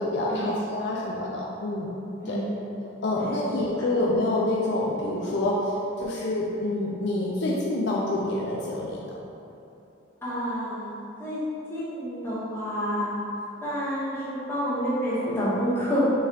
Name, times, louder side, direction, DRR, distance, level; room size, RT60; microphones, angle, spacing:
voice 1, 0.0-1.9 2.3-2.4 3.0-9.1, left 1 dB, 55° left, -4 dB, 0.4 m, -27 dB
voice 2, 10.2-10.9 11.2-11.4 11.7-13.2 13.6-16.0, equal, 10° left, -11 dB, 1.1 m, -28 dB
5.3 x 2.4 x 3.4 m, 2.8 s
head